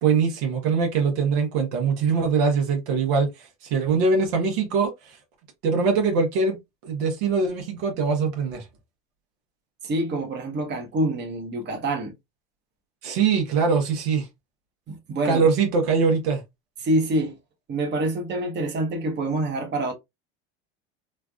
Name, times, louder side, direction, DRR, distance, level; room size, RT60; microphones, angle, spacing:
voice 1, 0.0-3.3 3.7-4.9 5.6-6.6 6.8-8.6 13.0-14.2 15.2-16.4, right 5 dB, 75° right, 1.2 m, -22 dB
voice 2, 9.8-12.1 14.9-15.5 16.8-17.3 17.7-19.9, right 1 dB, 35° right, 1.0 m, -26 dB
3.2 x 2.5 x 2.3 m
hypercardioid pair, 90°, 31 cm